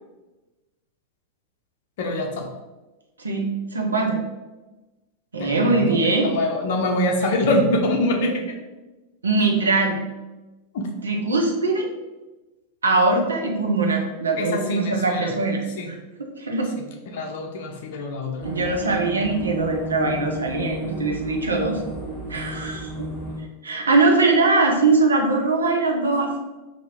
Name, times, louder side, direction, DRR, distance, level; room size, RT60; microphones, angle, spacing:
voice 1, 2.0-2.5 5.4-8.4 10.7-10.8 14.4-15.3 15.8-15.9 16.8-18.6, left 1 dB, 55° left, 1 dB, 0.6 m, -25 dB
voice 2, 3.2-4.2 5.3-6.3 9.2-10.0 11.0-11.9 12.8-16.7 18.4-21.8 22.3-22.9 23.6-26.4, right 3 dB, 75° right, 2 dB, 0.6 m, -21 dB
sound 1, 18.4-23.4, right 1 dB, 35° right, 1.4 m, -33 dB
2.7 x 2.7 x 4.2 m, 1.1 s
figure-of-eight pair, 90°, 0 cm